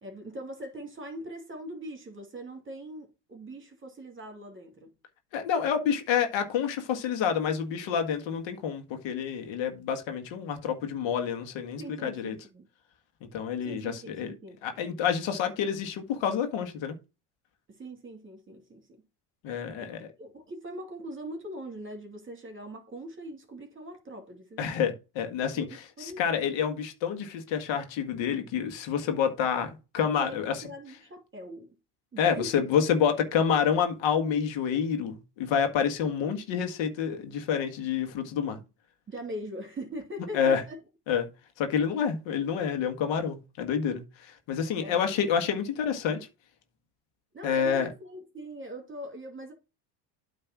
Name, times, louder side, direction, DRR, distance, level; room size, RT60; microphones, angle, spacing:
voice 1, 0.0-4.9 11.8-12.7 13.6-14.6 17.7-19.0 19.8-19.9 20.2-24.7 25.5-26.2 30.2-31.7 32.1-32.7 39.1-40.8 44.8-45.2 47.3-49.5, equal, 25° right, 2.5 m, -41 dB
voice 2, 5.3-12.3 13.3-14.3 14.6-16.9 19.4-20.1 24.6-30.6 32.2-38.6 40.3-40.6 41.1-41.3 41.6-46.2 47.4-47.9, left 7 dB, 60° left, 1.7 m, -28 dB
8.8 x 3.3 x 6.0 m
hypercardioid pair, 80°, 50 cm